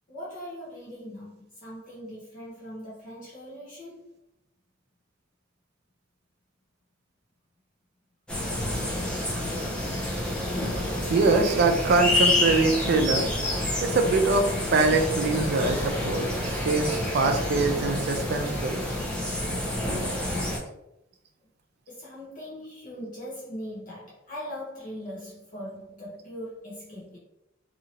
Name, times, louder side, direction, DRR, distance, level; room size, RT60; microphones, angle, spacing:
voice 1, 0.1-4.2 21.9-27.2, equal, 40° left, -7 dB, 0.8 m, -40 dB
sound 1, 8.3-20.6, left 1 dB, 5° left, 0.6 m, -28 dB
voice 2, 10.6-13.3 13.8-18.8, right 3 dB, 50° right, 5 dB, 0.4 m, -24 dB
2.8 x 2.7 x 2.8 m, 0.85 s
head